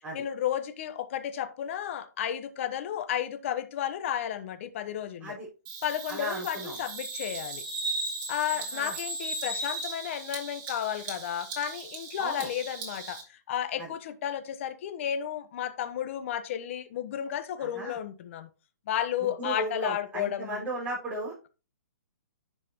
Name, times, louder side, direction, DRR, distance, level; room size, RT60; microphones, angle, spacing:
voice 1, 0.1-5.4 5.8-7.6 8.3-18.5 18.9-20.6, left 10 dB, 45° left, 1.1 m, -33 dB
Bird vocalization bird call bird song, 5.7-13.2, right 2 dB, 35° right, 2.9 m, -37 dB
voice 2, 6.1-6.8 8.7-8.9 12.2-12.5 13.8-13.9 17.6-18.0 19.2-21.3, right 1 dB, 15° right, 4.9 m, -35 dB
10.5 x 6.0 x 3.0 m
hypercardioid pair, 150°, 10 cm